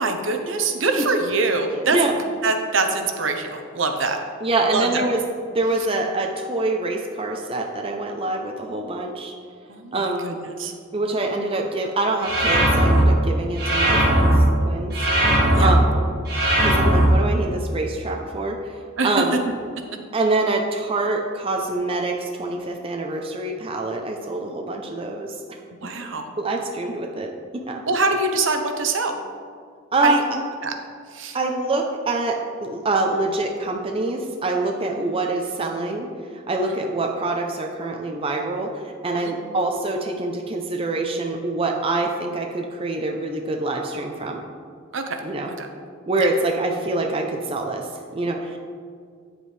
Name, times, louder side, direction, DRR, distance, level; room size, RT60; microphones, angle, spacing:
voice 1, 0.0-2.1 2.4-4.2 4.7-5.0 9.7-10.7 15.5-15.8 19.0-19.5 25.8-26.2 27.9-29.2 30.0-30.2 30.6-30.7 31.1-31.4 34.8-34.9 36.6-36.7 39.2-39.3 44.9-45.2 45.5-45.7, right 3 dB, 70° right, 5 dB, 0.8 m, -24 dB
voice 2, 4.4-5.2 5.5-9.3 9.9-10.4 10.9-14.3 14.6-14.9 15.6-15.9 16.6-19.3 20.1-25.3 26.4-27.3 27.7-27.8 29.9-30.2 31.3-36.1 36.5-44.4 45.2-45.5 46.1-48.6, right 2 dB, 30° right, 1 dB, 0.6 m, -25 dB
sound 1, 12.2-13.0 13.6-14.4 14.9-15.7 16.3-17.1, right 1 dB, 50° right, 1.8 m, -18 dB
9.2 x 8.0 x 3.3 m, 2.1 s
head